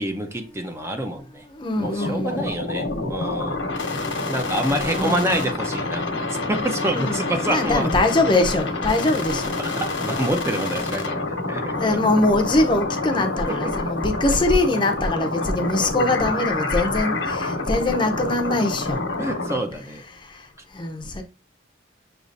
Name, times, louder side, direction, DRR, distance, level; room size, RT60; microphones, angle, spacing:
voice 1, 0.0-1.4 1.8-3.6 4.3-6.0 6.5-7.9 9.6-11.2 11.5-11.7 13.5-14.0 15.7-16.3 19.2-20.0, right 1 dB, 15° right, 0.6 m, -27 dB
voice 2, 1.5-2.5 4.8-5.5 6.9-9.6 11.7-19.0 20.1-21.2, left 2 dB, 25° left, 0.7 m, -23 dB
sound 1, 1.8-19.6, left 2 dB, 85° left, 1.1 m, -27 dB
6.6 x 3.0 x 2.6 m
head